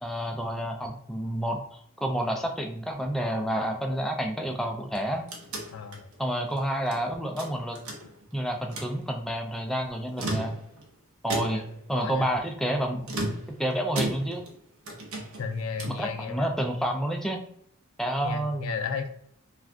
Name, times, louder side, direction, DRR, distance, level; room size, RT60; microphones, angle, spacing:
voice 1, 0.0-5.3 6.2-7.8 8.3-10.5 11.2-13.1 13.6-14.4 15.9-17.4 18.0-18.7, right 1 dB, ahead, 2 dB, 0.3 m, -29 dB
sound 1, 4.8-7.0 7.4-8.3 8.6-9.0 10.0-10.9 11.3-11.8 13.0-14.6 14.9-16.1, right 1 dB, 90° right, 0.8 m, -35 dB
voice 2, 5.7-6.1 11.4-11.6 11.9-12.3 15.4-16.5 18.2-19.1, left 5 dB, 75° left, 7 dB, 0.4 m, -33 dB
2.4 x 2.2 x 3.5 m, 0.67 s
head